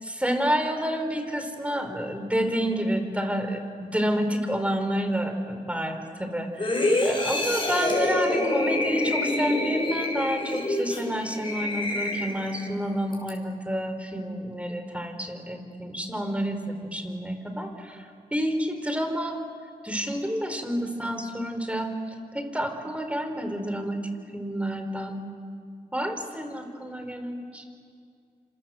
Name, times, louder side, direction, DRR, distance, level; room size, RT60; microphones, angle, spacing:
voice 1, 0.0-18.0 18.3-19.4 19.8-21.9 22.3-24.0 24.3-25.2 25.9-27.6, equal, 10° right, 6 dB, 4.9 m, -29 dB
sound 1, 6.6-12.7 13.1-13.3, left 1 dB, 30° left, 7.1 m, -26 dB
27.5 x 26.5 x 8.0 m, 2.3 s
cardioid pair, 50°, 16 cm